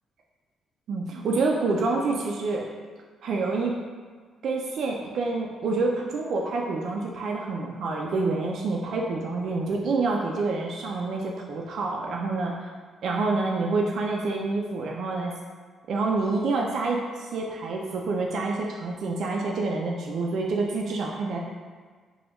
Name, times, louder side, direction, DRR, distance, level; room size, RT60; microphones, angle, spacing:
voice 1, 0.9-2.7 3.2-3.8 4.4-12.5 13.0-15.3 15.9-21.4, right 3 dB, 65° right, 0 dB, 0.3 m, -27 dB
3.0 x 2.2 x 2.9 m, 1.5 s
cardioid pair, 90°, 0 cm